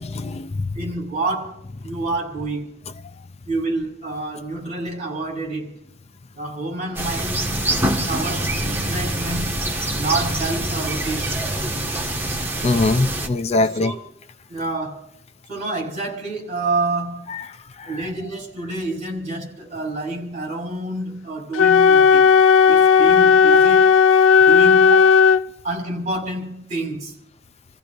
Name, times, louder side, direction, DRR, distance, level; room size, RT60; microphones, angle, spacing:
voice 1, 0.0-0.8 12.6-13.9 17.3-17.4 17.8-18.0, left 2 dB, 35° left, 0.4 m, -22 dB
voice 2, 0.7-2.7 3.5-5.7 6.3-7.5 8.0-9.6 9.9-11.5 13.5-14.0 14.5-15.1 15.5-17.3 17.8-22.3 22.7-24.1 24.4-25.2 25.6-27.1, right 2 dB, 40° right, 5.6 m, -28 dB
sound 1, 7.0-13.3, right 1 dB, 10° right, 1.5 m, -25 dB
Wind instrument woodwind instrument, 21.5-25.4, left 6 dB, 85° left, 0.5 m, -13 dB
29.5 x 15.0 x 2.5 m
head